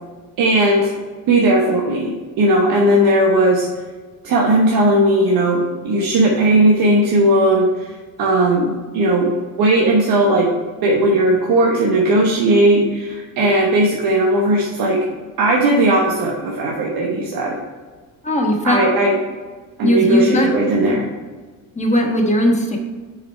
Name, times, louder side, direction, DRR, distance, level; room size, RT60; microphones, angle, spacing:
voice 1, 0.4-0.9 1.3-3.7 4.2-9.3 9.6-10.5 10.8-15.0 15.4-17.6 18.6-19.1 19.8-21.1, right 1 dB, 60° right, -1 dB, 1.2 m, -16 dB
voice 2, 18.2-18.8 19.8-20.6 20.8-21.0 21.8-22.8, equal, 15° left, 1 dB, 1.3 m, -18 dB
6.4 x 5.1 x 4.5 m, 1.4 s
cardioid pair, 115°, 40 cm